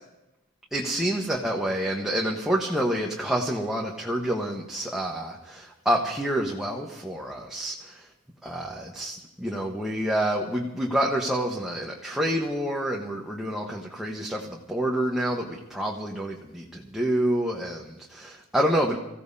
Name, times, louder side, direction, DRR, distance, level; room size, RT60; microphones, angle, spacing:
voice 1, 0.7-8.0 8.4-19.0, right 1 dB, ahead, -2 dB, 1.2 m, -28 dB
26.5 x 15.5 x 2.8 m, 0.95 s
head